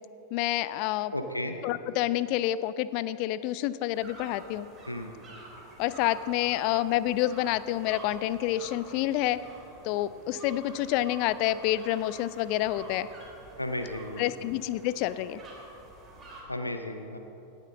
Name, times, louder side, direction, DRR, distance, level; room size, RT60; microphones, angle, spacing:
voice 1, 0.3-1.1 1.6-4.7 5.8-9.4 9.8-13.1 14.2-15.4, left 14 dB, 45° left, 16 dB, 0.4 m, -28 dB
voice 2, 1.1-1.6 4.9-5.1 13.6-14.3 16.5-17.2, left 1 dB, 85° left, 6 dB, 0.6 m, -34 dB
sound 1, 3.9-16.4, right 2 dB, 20° right, 2.7 m, -49 dB
17.0 x 9.0 x 3.7 m, 2.9 s
figure-of-eight pair, 90°, 0 cm